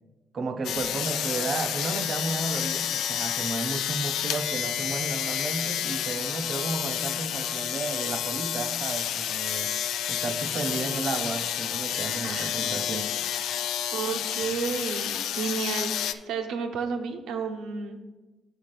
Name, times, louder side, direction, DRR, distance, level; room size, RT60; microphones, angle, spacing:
voice 1, 0.3-9.7 10.1-13.0, right 3 dB, 50° right, 7 dB, 0.7 m, -33 dB
sound 1, 0.6-16.1, left 10 dB, 80° left, 0.3 m, -30 dB
voice 2, 12.2-12.8 13.9-18.1, right 5 dB, 85° right, 5 dB, 0.8 m, -32 dB
5.7 x 5.3 x 5.8 m, 1.2 s
cardioid pair, 90°, 0 cm